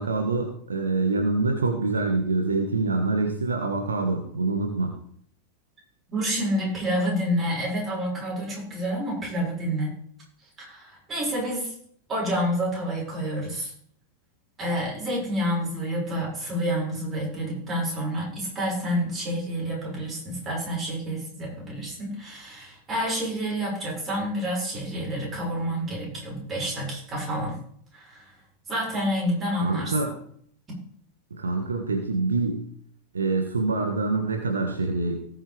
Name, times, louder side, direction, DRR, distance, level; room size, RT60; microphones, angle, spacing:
voice 1, 0.0-4.9 29.6-30.1 31.3-32.6 33.1-35.2, right 3 dB, 70° right, 3 dB, 1.5 m, -25 dB
voice 2, 6.1-9.9 10.7-11.7 12.1-13.7 14.6-27.6 27.9-28.2 28.7-29.9, equal, 20° right, -3 dB, 5.8 m, -28 dB
18.5 x 6.5 x 3.4 m, 0.63 s
figure-of-eight pair, 90°, 0 cm